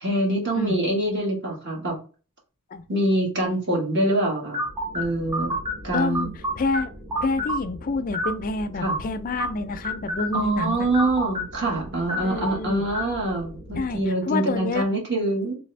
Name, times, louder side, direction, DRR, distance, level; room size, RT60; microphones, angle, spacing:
voice 1, 0.0-2.0 2.9-4.6 4.9-5.5 5.8-6.3 8.8-8.9 10.3-15.6, right 1 dB, 50° right, 1.5 m, -25 dB
sound 1, 4.5-14.0, equal, 20° right, 1.8 m, -32 dB
voice 2, 5.9-6.3 6.6-6.9 7.2-10.9 12.2-12.8 13.7-14.9, left 3 dB, 40° left, 0.4 m, -27 dB
3.4 x 3.2 x 3.2 m
head